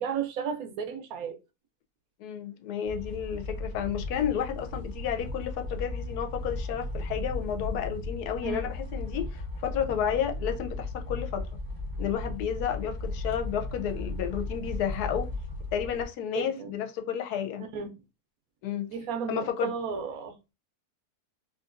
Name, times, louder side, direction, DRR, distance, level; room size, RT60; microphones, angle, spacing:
voice 1, 0.0-1.4 8.4-8.7 16.3-16.8 17.7-17.9 18.9-20.3, right 6 dB, 75° right, 1.0 m, -33 dB
voice 2, 2.2-11.5 12.0-15.3 15.7-17.7 18.6-18.9 19.3-19.7, left 9 dB, 85° left, 1.1 m, -31 dB
sound 1, 2.8-16.0, left 2 dB, 30° right, 0.4 m, -36 dB
3.7 x 2.4 x 2.5 m
omnidirectional pair, 1.6 m